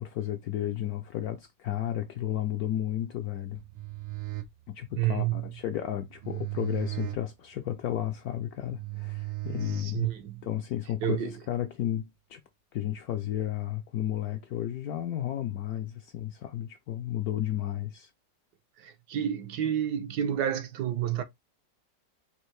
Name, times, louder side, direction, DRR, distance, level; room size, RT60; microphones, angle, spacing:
voice 1, 0.0-3.6 4.7-10.1 10.4-12.4 12.7-18.1, left 12 dB, 70° left, 0.9 m, -33 dB
sound 1, 3.5-10.4, right 19 dB, 90° right, 1.6 m, -38 dB
voice 2, 5.0-5.5 9.6-10.5 11.0-11.3 18.8-21.2, right 10 dB, 70° right, 1.2 m, -30 dB
4.5 x 2.5 x 3.1 m
omnidirectional pair, 2.0 m